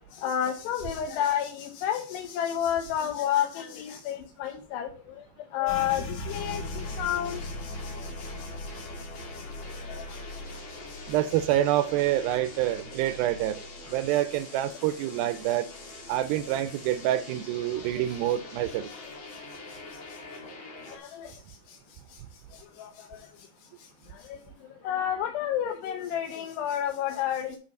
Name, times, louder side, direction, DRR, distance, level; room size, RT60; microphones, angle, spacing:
voice 1, 0.1-5.2 5.5-9.1 9.3-9.4 9.7-10.6 18.9-19.0 19.7-19.8 20.9-21.4 21.7-21.8 22.1-22.2 22.5-23.3 24.1-24.4 24.8-27.6, left 10 dB, 90° left, 3.0 m, -31 dB
sound 1, 5.7-15.1 15.4-16.6 16.9-17.4 17.8-18.4, left 1 dB, 65° left, 2.4 m, -41 dB
sound 2, 6.2-21.0, left 2 dB, 40° left, 1.8 m, -44 dB
voice 2, 11.1-13.6 13.9-15.7 16.1-18.9, right 13 dB, 85° right, 2.1 m, -27 dB
10.0 x 3.9 x 5.2 m
omnidirectional pair, 4.7 m